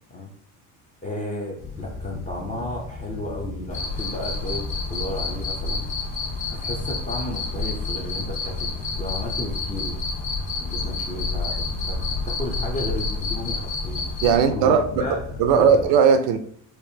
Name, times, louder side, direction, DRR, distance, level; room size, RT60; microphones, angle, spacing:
voice 1, 1.0-4.6 4.9-5.9 6.5-10.0 10.6-14.0 14.5-15.8, left 1 dB, 15° left, -1 dB, 0.5 m, -33 dB
sound 1, 1.6-15.9, left 3 dB, 55° left, 1.2 m, -37 dB
Cricket, 3.7-14.4, left 3 dB, 40° left, 1.3 m, -29 dB
voice 2, 14.2-14.8 15.4-16.4, right 6 dB, 75° right, 9 dB, 0.5 m, -17 dB
4.5 x 2.5 x 2.7 m, 0.63 s
cardioid pair, 125°, 47 cm